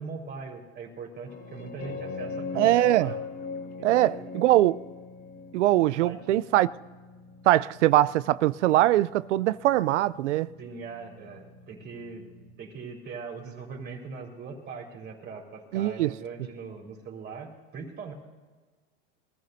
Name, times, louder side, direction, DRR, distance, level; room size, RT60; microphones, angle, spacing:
voice 1, 0.0-3.2 3.8-4.3 6.0-6.2 10.6-12.3 12.6-18.1, right 4 dB, 30° right, 4.0 m, -41 dB
sound 1, 1.3-12.5, left 4 dB, 50° left, 1.5 m, -41 dB
voice 2, 2.6-3.1 3.8-4.8 5.5-6.7 7.5-10.5 15.7-16.1, right 15 dB, 85° right, 0.5 m, -22 dB
24.0 x 14.5 x 2.7 m
supercardioid pair, 120°, 35 cm